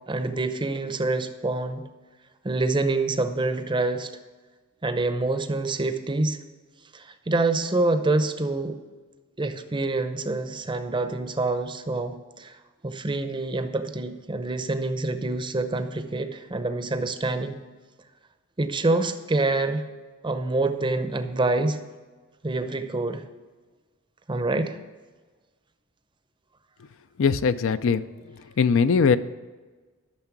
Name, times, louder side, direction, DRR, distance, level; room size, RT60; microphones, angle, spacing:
voice 1, 0.1-1.8 2.4-4.1 4.8-6.4 6.9-8.8 9.4-12.6 12.8-17.5 18.6-19.9 20.2-21.8 22.4-23.2 24.3-24.8, right 2 dB, 20° right, 9 dB, 0.6 m, -26 dB
voice 2, 27.2-28.0 28.6-29.2, left 5 dB, 60° left, 13 dB, 0.4 m, -20 dB
12.5 x 6.5 x 5.9 m, 1.3 s
head